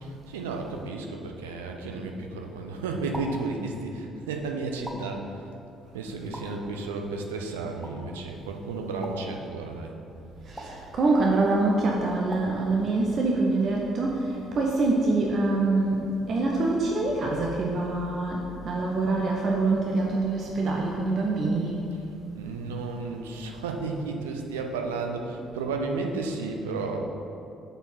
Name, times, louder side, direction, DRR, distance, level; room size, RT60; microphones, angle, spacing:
voice 1, 0.0-5.5 5.9-9.9 21.9-22.0 22.3-27.0, right 3 dB, 75° right, 2 dB, 0.6 m, -33 dB
sound 1, 3.1-3.5 4.9-5.3 6.3-6.7 7.8-8.1 9.0-9.4 10.6-10.9 12.3-12.7, equal, 5° right, 1.1 m, -40 dB
voice 2, 10.5-21.8, right 2 dB, 50° right, -2 dB, 0.8 m, -25 dB
6.9 x 4.5 x 5.6 m, 2.7 s
figure-of-eight pair, 45°, 0 cm